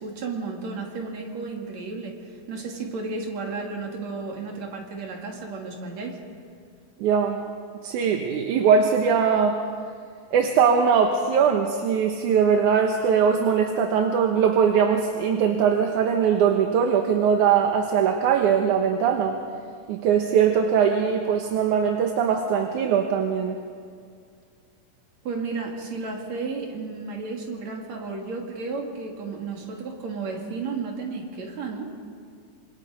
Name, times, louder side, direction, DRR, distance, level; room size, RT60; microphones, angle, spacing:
voice 1, 0.0-6.2 25.2-31.9, right 4 dB, 60° right, 1 dB, 3.8 m, -33 dB
voice 2, 7.0-7.4 7.8-9.6 10.3-19.4 19.9-23.6, right 7 dB, 75° right, 3 dB, 2.5 m, -21 dB
26.5 x 26.5 x 5.2 m, 2.2 s
omnidirectional pair, 3.7 m